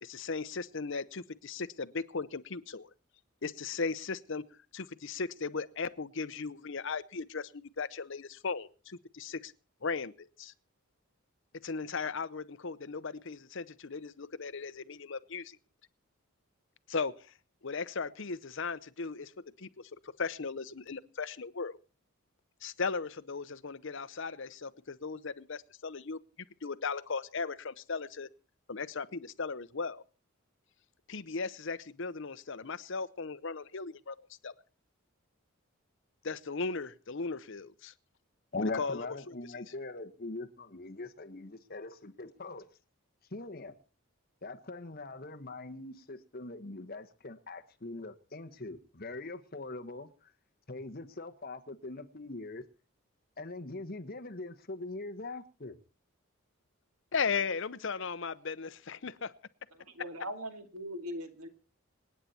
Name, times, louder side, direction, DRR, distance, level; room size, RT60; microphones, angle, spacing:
voice 1, 0.0-2.9 3.4-4.4 4.7-9.5 9.8-10.5 11.6-15.6 16.9-17.3 17.6-19.9 20.2-21.8 22.6-26.2 26.6-28.3 28.7-30.0 31.1-34.5 36.2-37.9 38.6-39.0 39.3-39.4 57.1-59.3, left 4 dB, 60° left, 0.8 m, -37 dB
voice 2, 38.5-42.7 43.3-43.8 44.4-50.3 50.7-52.6 53.4-55.8, left 2 dB, 45° left, 1.3 m, -41 dB
voice 3, 59.7-61.5, equal, 85° right, 2.4 m, -41 dB
27.0 x 9.4 x 4.3 m
head